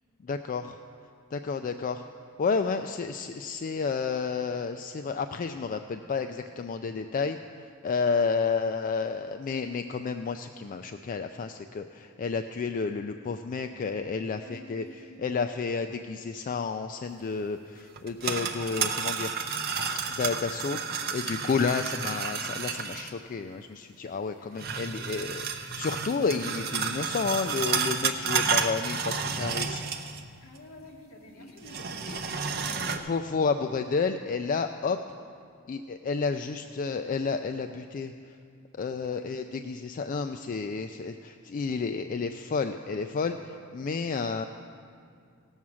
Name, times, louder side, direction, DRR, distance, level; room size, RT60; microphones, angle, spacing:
voice 1, 0.2-0.8 1.3-2.0 2.4-7.4 7.8-14.8 15.2-19.3 20.1-20.8 21.1-29.8 32.1-32.2 33.1-35.0 35.7-38.1 38.7-44.4, left 5 dB, 40° left, 7 dB, 0.3 m, -31 dB
voice 2, 14.3-15.2 24.4-24.7 30.4-33.1 36.5-36.8 39.0-39.3, left 1 dB, 70° left, 0 dB, 1.8 m, -50 dB
sound 1, 18.0-23.1 24.6-30.3 30.6-30.7 31.6-33.0, right 6 dB, 45° right, 0.7 m, -31 dB
17.0 x 7.2 x 6.2 m, 2.3 s
head